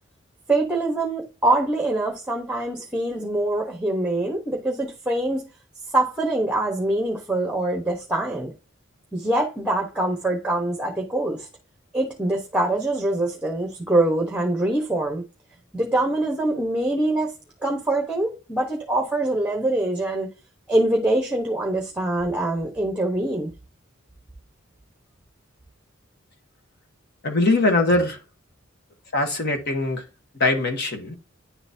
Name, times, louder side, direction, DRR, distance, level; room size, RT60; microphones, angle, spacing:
voice 1, 0.5-5.4 5.9-8.5 9.1-11.5 11.9-15.2 15.7-17.3 17.6-20.3 20.7-23.5, right 2 dB, 5° right, 1.0 m, -24 dB
voice 2, 27.2-28.2 29.1-30.0 30.4-31.2, left 2 dB, 55° left, 1.3 m, -21 dB
9.7 x 3.9 x 2.7 m
head